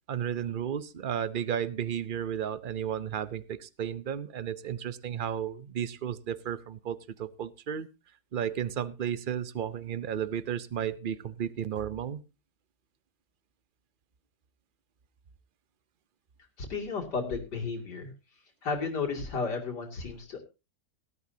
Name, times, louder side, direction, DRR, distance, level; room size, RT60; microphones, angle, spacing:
voice 1, 0.1-7.9 8.3-12.2, right 9 dB, 55° right, 15 dB, 0.5 m, -33 dB
voice 2, 16.6-18.1 18.6-20.4, left 4 dB, 80° left, 0 dB, 3.2 m, -33 dB
18.0 x 12.5 x 2.8 m, 0.29 s
omnidirectional pair, 1.8 m